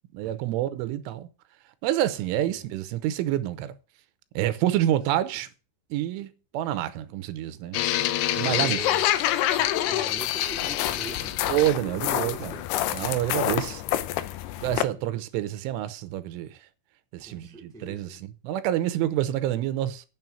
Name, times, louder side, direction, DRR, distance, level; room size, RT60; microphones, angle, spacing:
voice 1, 0.1-1.3 1.8-3.7 4.4-5.5 5.9-7.8 8.4-8.8 11.5-12.5 12.9-13.8 14.6-16.6 17.1-20.1, right 13 dB, 85° right, 3.4 m, -28 dB
sound 1, 7.7-14.8, left 13 dB, 80° left, 2.4 m, -26 dB
voice 2, 8.4-9.1 9.6-12.7 14.9-15.2 17.2-18.2, right 2 dB, ahead, 1.2 m, -43 dB
9.2 x 6.4 x 7.1 m
omnidirectional pair, 5.5 m